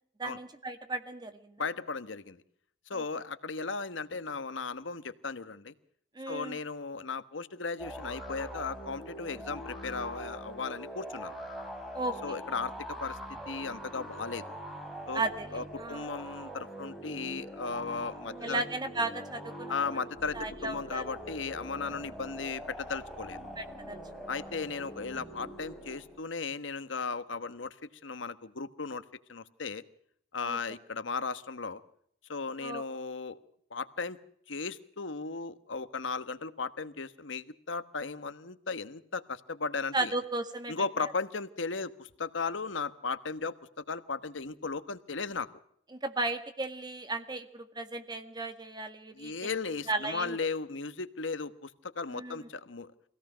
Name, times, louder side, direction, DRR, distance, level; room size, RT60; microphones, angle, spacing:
voice 1, 0.2-1.7 2.9-3.0 6.2-6.6 11.9-12.4 15.1-16.1 18.4-19.7 20.3-21.1 23.6-24.0 30.4-30.6 32.6-32.9 39.9-40.7 41.0-41.1 45.9-49.3 49.9-50.5 52.1-52.5, right 2 dB, 25° right, 8 dB, 1.8 m, -35 dB
voice 2, 1.6-2.4 2.9-5.7 6.3-11.3 12.2-12.7 13.0-13.2 13.5-14.4 15.1-15.2 15.5-18.6 19.7-23.4 24.3-27.7 28.0-29.0 29.3-29.8 30.3-31.8 32.3-33.4 33.7-34.2 34.5-40.1 40.7-43.6 43.9-45.5 49.1-52.9, left 4 dB, 90° left, 12 dB, 1.2 m, -36 dB
sound 1, 7.8-26.2, equal, ahead, 4.6 m, -43 dB
24.5 x 17.0 x 6.2 m, 0.69 s
head